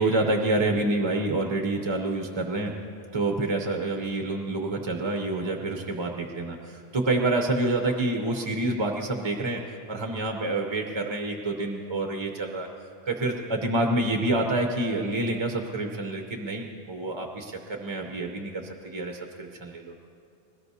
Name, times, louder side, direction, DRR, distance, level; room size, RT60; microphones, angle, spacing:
voice 1, 0.0-2.7 3.1-9.6 9.9-12.7 13.1-19.9, right 2 dB, 30° right, 3 dB, 0.7 m, -27 dB
21.0 x 17.5 x 2.7 m, 2.6 s
omnidirectional pair, 1.1 m